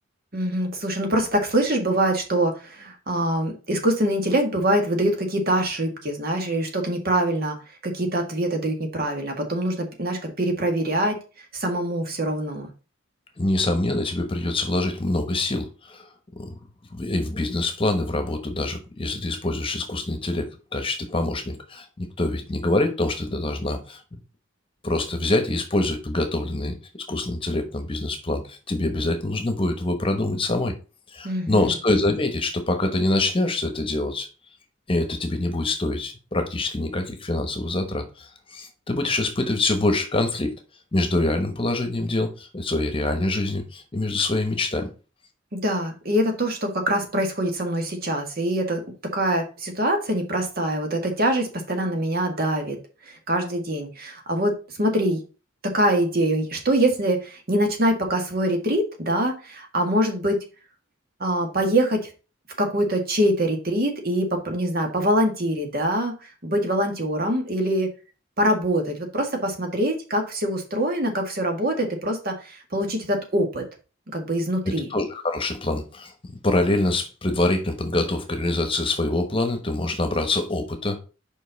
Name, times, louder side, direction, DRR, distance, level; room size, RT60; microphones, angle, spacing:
voice 1, 0.3-7.6 7.8-11.2 11.5-12.7 31.2-31.8 45.5-52.8 53.1-55.2 55.6-60.4 61.2-62.1 62.6-66.2 66.4-67.9 68.4-73.6 74.1-74.9, right 1 dB, 50° right, 4 dB, 1.7 m, -24 dB
voice 2, 13.4-16.1 16.4-16.6 16.9-24.0 24.8-30.7 31.1-34.3 34.9-40.5 40.9-44.9 74.9-81.0, left 2 dB, 25° left, 6 dB, 1.1 m, -25 dB
5.4 x 5.3 x 4.0 m, 0.33 s
head